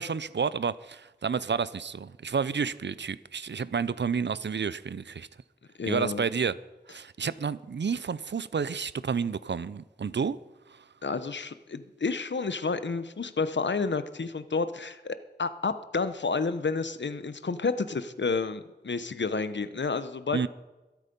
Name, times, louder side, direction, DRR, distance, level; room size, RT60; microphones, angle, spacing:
voice 1, 0.0-5.3 5.9-6.6 6.9-10.4 10.7-10.8 20.3-20.5, right 6 dB, 80° right, 0.5 m, -30 dB
voice 2, 5.8-6.2 11.0-20.5, left 4 dB, 85° left, 0.9 m, -30 dB
22.5 x 8.3 x 5.3 m
wide cardioid pair, 45°, 18 cm